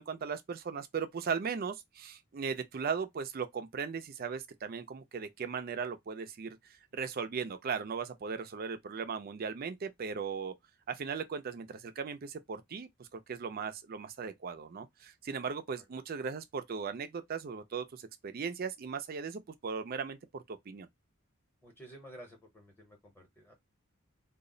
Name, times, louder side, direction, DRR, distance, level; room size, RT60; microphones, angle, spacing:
voice 1, 0.0-10.5 10.9-20.9, right 6 dB, 45° right, 0.4 m, -38 dB
voice 2, 21.6-23.5, right 1 dB, 10° left, 0.7 m, -52 dB
2.3 x 2.0 x 3.7 m
head